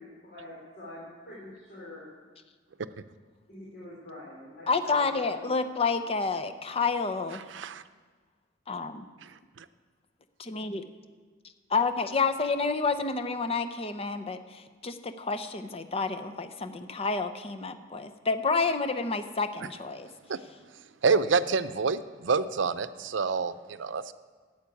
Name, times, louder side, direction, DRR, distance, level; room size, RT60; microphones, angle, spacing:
voice 1, 0.0-2.1 3.5-5.6 6.0-6.1, left 1 dB, 55° left, -6 dB, 3.4 m, -45 dB
voice 2, 4.7-7.4 8.7-9.1 10.4-10.8 11.7-20.1, left 4 dB, 30° left, 9 dB, 0.7 m, -29 dB
voice 3, 7.5-7.8 20.3-20.4 21.0-24.1, right 5 dB, 80° right, 13 dB, 0.6 m, -27 dB
11.5 x 8.9 x 8.5 m, 1.4 s
head